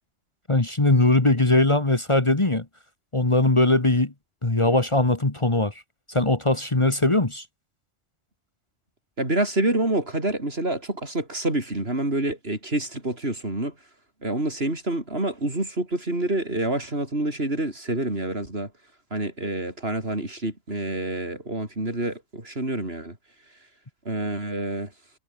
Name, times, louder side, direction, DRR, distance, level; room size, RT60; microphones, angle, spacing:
voice 1, 0.5-2.7 3.1-4.1 4.4-5.7 6.1-7.4, left 2 dB, 25° left, 1.6 m, -20 dB
voice 2, 9.2-13.7 14.2-18.7 19.1-23.2 24.1-24.9, right 2 dB, 50° right, 5.8 m, -27 dB
omnidirectional pair, 1.3 m